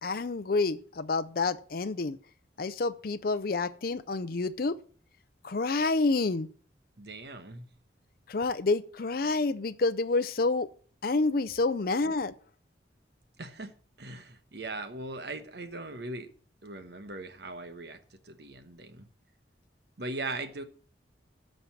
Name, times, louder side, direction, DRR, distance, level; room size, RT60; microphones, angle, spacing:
voice 1, 0.0-2.2 2.6-4.8 5.4-6.5 8.3-10.7 11.0-12.3, left 3 dB, 55° left, 0.5 m, -28 dB
voice 2, 7.0-7.7 13.4-16.3 16.6-19.1 20.0-20.6, right 2 dB, 60° right, 1.2 m, -40 dB
13.0 x 5.4 x 5.9 m
head